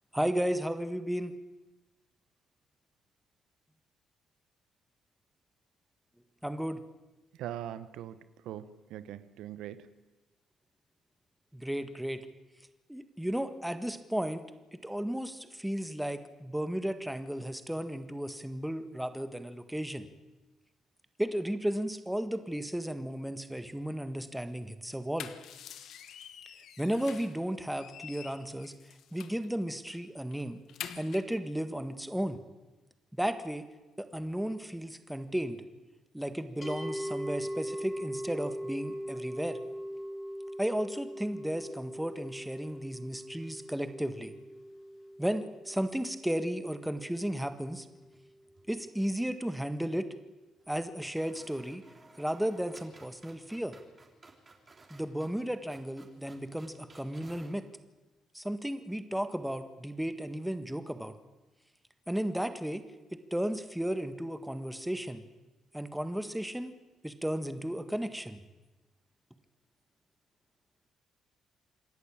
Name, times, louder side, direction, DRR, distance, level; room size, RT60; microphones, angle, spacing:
voice 1, 0.1-1.3 6.4-6.8 11.5-12.3 12.9-14.4 14.7-20.1 21.2-25.3 26.8-28.7 29.1-30.6 31.0-32.4 33.1-33.7 34.0-35.6 36.1-39.6 40.6-44.3 45.2-47.9 48.7-50.1 50.7-51.8 52.2-53.8 54.9-57.7 58.3-61.1 62.1-62.8 63.1-65.2 65.7-66.7 67.0-68.4, equal, 5° right, 9 dB, 1.6 m, -34 dB
voice 2, 7.3-10.0, right 11 dB, 90° right, 14 dB, 0.9 m, -42 dB
sound 1, 24.9-27.4 27.7-29.5 29.9-30.0 30.3-31.4, left 9 dB, 75° left, 1.2 m, -46 dB
sound 2, 36.6-47.8, equal, 25° left, 5.1 m, -41 dB
sound 3, 47.9-48.7 49.0-49.1 50.6-50.7 51.0-57.6, right 3 dB, 30° right, 3.8 m, -58 dB
27.0 x 11.0 x 8.8 m, 1.1 s
cardioid pair, 90°, 0 cm